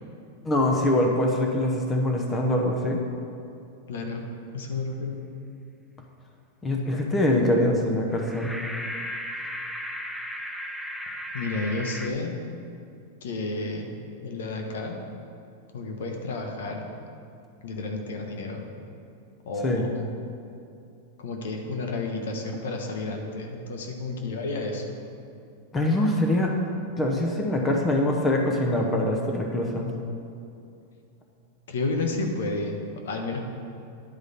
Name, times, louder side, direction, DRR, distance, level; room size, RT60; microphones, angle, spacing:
voice 1, 0.4-3.0 6.6-8.5 19.6-19.8 25.7-26.5 27.0-29.9, left 1 dB, 20° left, 1 dB, 0.9 m, -23 dB
voice 2, 3.9-4.2 4.5-5.2 11.3-12.4 13.2-13.9 14.2-15.0 15.7-16.9 17.6-18.6 19.4-20.1 21.2-25.0 31.7-33.4, left 3 dB, 80° left, 3 dB, 1.0 m, -31 dB
sound 1, 8.1-12.1, equal, ahead, 0.5 m, -35 dB
10.5 x 4.9 x 4.1 m, 2.6 s
hypercardioid pair, 125°, 0 cm